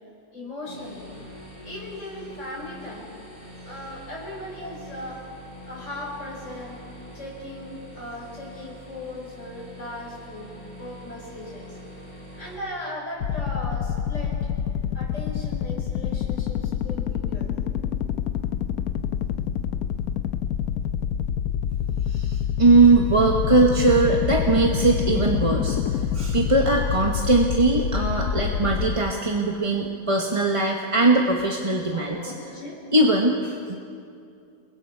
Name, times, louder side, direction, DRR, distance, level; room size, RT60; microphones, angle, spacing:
voice 1, 0.3-1.1 1.6-3.2 3.6-5.3 5.6-6.8 7.1-11.8 12.3-14.5 14.9-17.6 22.2-22.3 28.4-28.7 31.5-32.9, left 1 dB, 45° left, -2 dB, 4.7 m, -38 dB
sound 1, 0.6-12.6, equal, 70° right, 6.8 m, -44 dB
sound 2, 13.2-29.0, left 8 dB, 70° left, 1.2 m, -27 dB
voice 2, 22.1-32.3 32.9-33.8, right 3 dB, 20° right, 0 dB, 1.2 m, -20 dB
29.5 x 22.0 x 4.7 m, 2.5 s
omnidirectional pair, 1.7 m